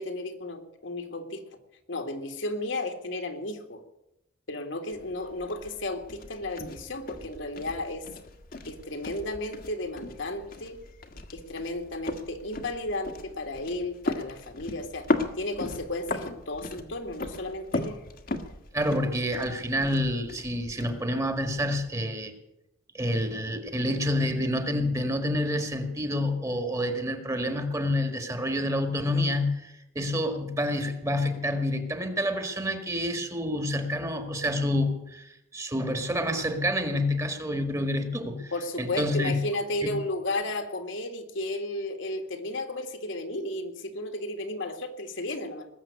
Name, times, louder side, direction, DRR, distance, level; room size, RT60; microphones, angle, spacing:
voice 1, 0.0-1.4 1.9-3.8 4.5-8.0 8.7-10.8 11.3-15.1 15.3-18.0 38.5-45.7, left 2 dB, 65° left, 5 dB, 2.0 m, -33 dB
sound 1, 4.9-21.9, left 2 dB, 45° left, 1.5 m, -37 dB
voice 2, 18.7-22.3 22.9-38.5 38.8-39.4 39.8-39.9, left 1 dB, 15° right, 7 dB, 1.7 m, -28 dB
20.0 x 7.6 x 9.5 m, 0.89 s
head